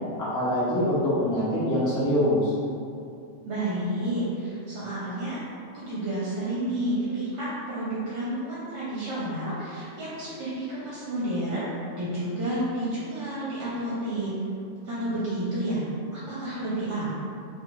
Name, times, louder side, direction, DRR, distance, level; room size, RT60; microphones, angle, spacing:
voice 1, 0.2-2.5, left 1 dB, 20° left, -10 dB, 0.6 m, -24 dB
voice 2, 3.4-5.4 5.7-11.7 11.9-14.3 14.8-15.8 16.1-17.1, right 1 dB, 65° right, -9 dB, 1.0 m, -30 dB
2.6 x 2.5 x 3.0 m, 2.4 s
omnidirectional pair, 1.4 m